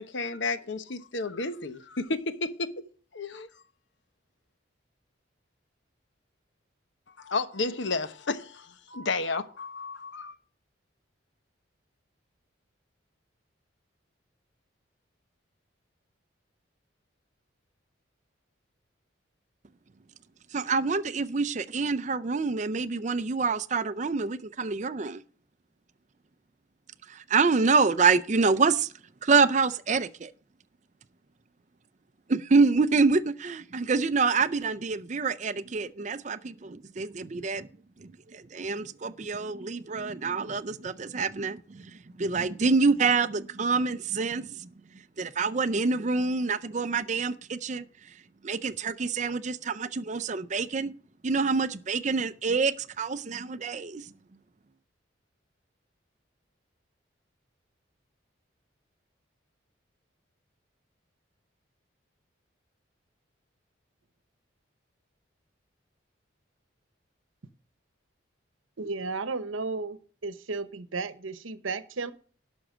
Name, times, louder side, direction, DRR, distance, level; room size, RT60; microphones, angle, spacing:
voice 1, 0.0-2.7 3.1-3.5 7.2-10.4, left 3 dB, 65° left, 0.9 m, -32 dB
voice 2, 20.5-25.2 27.1-28.9 29.2-30.3 32.3-37.7 38.3-41.6 42.2-44.6 45.2-47.8 48.4-50.9 51.2-54.0, right 4 dB, 35° right, 0.5 m, -26 dB
voice 3, 68.8-70.0 70.2-72.1, right 3 dB, 85° right, 0.9 m, -33 dB
12.0 x 6.1 x 6.1 m
head